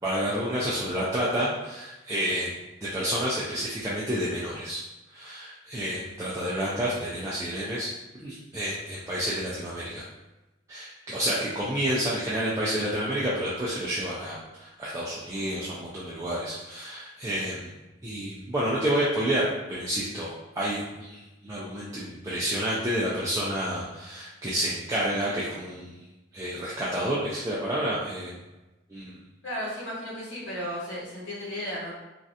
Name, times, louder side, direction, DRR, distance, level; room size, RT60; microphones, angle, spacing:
voice 1, 0.0-2.5 2.8-4.8 5.1-7.9 8.2-10.0 10.7-25.9 26.3-28.4 28.9-29.2, equal, 15° right, -8 dB, 0.4 m, -29 dB
voice 2, 29.4-31.9, equal, 85° left, -6 dB, 1.0 m, -34 dB
3.2 x 2.5 x 2.7 m, 1.0 s
head